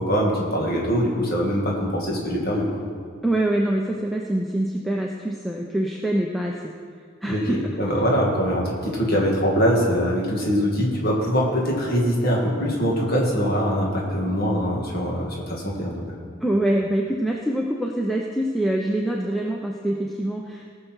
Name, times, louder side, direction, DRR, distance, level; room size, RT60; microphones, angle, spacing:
voice 1, 0.0-2.7 7.3-16.0, equal, 50° left, -3 dB, 2.1 m, -23 dB
voice 2, 3.2-6.7 7.2-7.6 16.4-20.7, right 1 dB, ahead, -1 dB, 0.6 m, -25 dB
18.0 x 6.7 x 4.6 m, 2.2 s
head